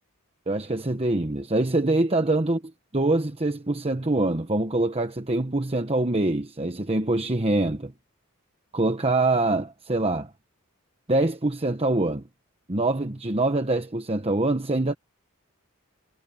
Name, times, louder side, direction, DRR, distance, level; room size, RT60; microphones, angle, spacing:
voice 1, 0.5-2.6 2.9-7.9 8.7-10.3 11.1-12.2 12.7-14.9, right 2 dB, 25° right, 1.1 m, -24 dB
head